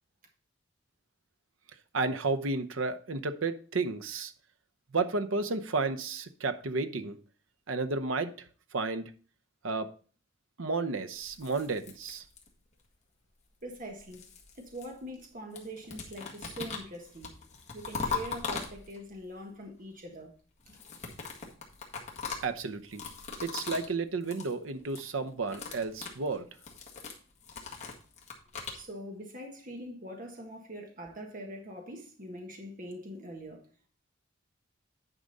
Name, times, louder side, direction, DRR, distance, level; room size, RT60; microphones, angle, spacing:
voice 1, 1.9-4.3 4.9-7.2 7.7-8.5 8.7-9.1 9.6-9.9 10.6-12.2 22.4-23.0 23.4-26.5, right 3 dB, 85° right, 0.8 m, -32 dB
sound 1, 11.2-12.7 13.7-15.3 15.5-19.2 20.6-23.9 24.2-24.5 24.8-25.1 25.4-28.8, left 5 dB, 35° left, 1.8 m, -40 dB
voice 2, 13.6-14.3 14.6-17.3 17.7-20.3 20.7-20.8 28.7-33.6, right 1 dB, 45° right, 1.5 m, -43 dB
9.9 x 5.2 x 4.0 m
head